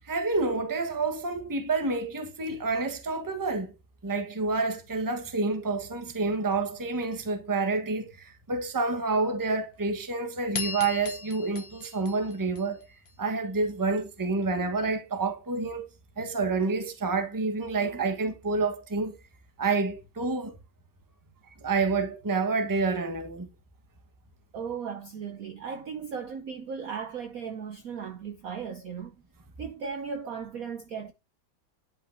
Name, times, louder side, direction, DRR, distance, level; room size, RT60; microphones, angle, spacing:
voice 1, 0.1-3.7 4.0-12.8 13.2-15.9 16.2-19.1 19.6-20.6 21.6-23.5, right 3 dB, 15° right, 0.8 m, -28 dB
sound 1, 10.5-13.1, left 5 dB, 50° left, 0.7 m, -37 dB
voice 2, 24.5-29.2 29.6-31.1, right 6 dB, 65° right, 0.9 m, -36 dB
11.0 x 5.6 x 2.6 m
omnidirectional pair, 2.1 m